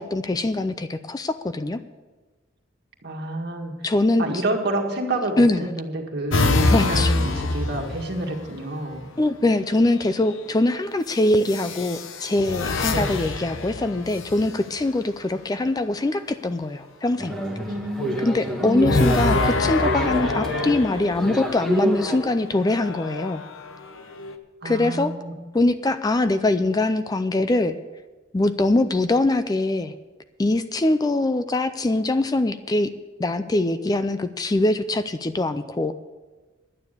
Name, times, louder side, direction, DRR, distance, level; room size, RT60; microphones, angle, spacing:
voice 1, 0.0-1.8 3.8-4.4 5.4-5.6 6.7-7.1 9.2-17.3 18.2-23.4 24.6-25.1 25.5-27.8 28.3-29.9 30.4-32.9 33.2-36.0, left 2 dB, 20° left, 11 dB, 0.4 m, -23 dB
voice 2, 3.0-3.7 4.2-9.1 12.9-13.1 17.7-18.2 18.6-19.0 24.6-25.3, right 1 dB, 55° right, 2 dB, 1.8 m, -28 dB
sound 1, 6.3-8.6 9.8-10.3 11.4-14.8 18.8-21.8 22.5-24.4, left 3 dB, 80° left, 1.0 m, -26 dB
sound 2, 17.2-22.2, right 1 dB, 5° left, 1.6 m, -28 dB
11.0 x 9.5 x 6.7 m, 1.3 s
head